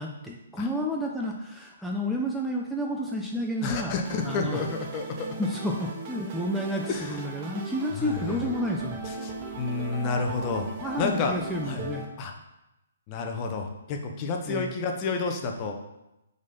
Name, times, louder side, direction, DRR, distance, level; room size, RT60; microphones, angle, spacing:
voice 1, 0.0-3.9 4.2-4.6 5.4-9.0 10.8-12.1 14.5-14.7, equal, ahead, -2 dB, 0.6 m, -30 dB
voice 2, 3.6-5.3 6.9-7.2 8.0-8.4 9.1-10.7 11.0-11.3 11.6-11.9 12.2-12.3 13.1-15.7, left 4 dB, 30° left, 4 dB, 0.9 m, -30 dB
sound 1, 4.0-12.0, right 3 dB, 35° right, 1.1 m, -38 dB
5.1 x 4.1 x 5.3 m, 0.93 s
hypercardioid pair, 135°, 0 cm